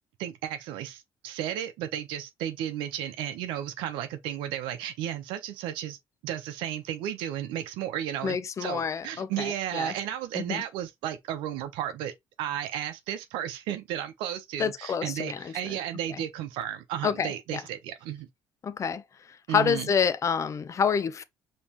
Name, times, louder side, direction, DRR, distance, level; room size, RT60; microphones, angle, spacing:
voice 1, 0.2-6.0 6.2-12.1 12.4-18.3 19.5-19.9, right 11 dB, 85° right, 0.8 m, -33 dB
voice 2, 8.2-9.9 10.3-10.6 14.6-15.5 16.1-16.2 17.0-17.6 18.6-19.0 19.5-21.2, left 7 dB, 40° left, 0.6 m, -28 dB
5.3 x 3.1 x 2.9 m
supercardioid pair, 85°, 8 cm